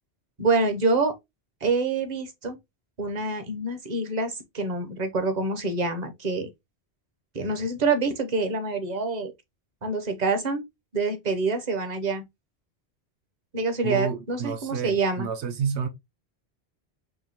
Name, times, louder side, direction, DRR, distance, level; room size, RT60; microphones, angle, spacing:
voice 1, 0.4-1.1 1.6-2.6 3.0-6.5 7.3-9.3 9.8-10.6 10.9-12.2 13.5-15.3, right 3 dB, 45° right, 0.8 m, -26 dB
voice 2, 13.8-15.9, right 6 dB, 90° right, 0.9 m, -30 dB
4.9 x 2.6 x 2.8 m
omnidirectional pair, 1.1 m